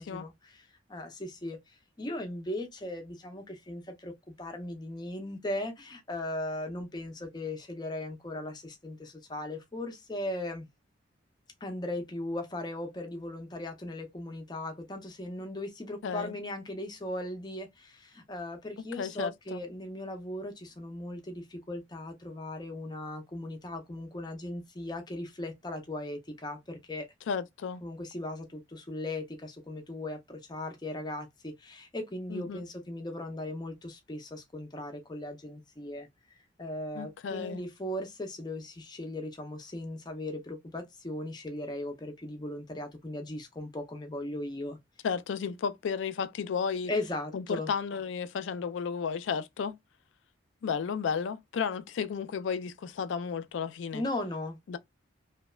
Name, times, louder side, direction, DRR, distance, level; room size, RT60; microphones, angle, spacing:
voice 1, 0.0-4.1 4.4-10.7 11.6-27.1 27.8-36.1 36.6-44.8 46.9-47.7 53.9-54.6, left 1 dB, 20° left, 0.5 m, -38 dB
voice 2, 16.0-16.3 19.0-19.6 27.3-27.8 32.3-32.6 36.9-37.6 45.0-46.9 47.3-49.8 50.6-54.0 54.7-54.8, left 6 dB, 75° left, 0.3 m, -33 dB
2.8 x 2.1 x 2.2 m
head